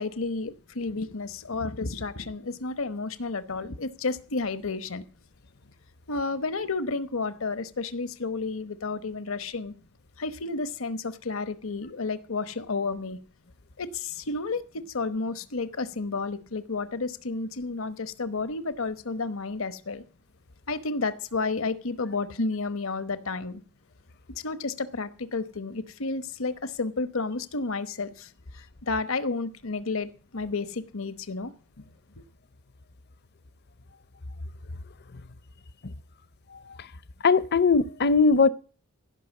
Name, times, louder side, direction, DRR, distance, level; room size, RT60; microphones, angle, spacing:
voice 1, 0.0-5.0 6.1-9.7 10.2-13.2 13.8-20.0 20.7-23.6 24.4-31.5 31.8-31.9 32.2-32.3, left 3 dB, 70° left, 1.0 m, -31 dB
voice 2, 37.2-38.5, left 4 dB, 50° left, 0.6 m, -19 dB
16.0 x 5.9 x 8.2 m
head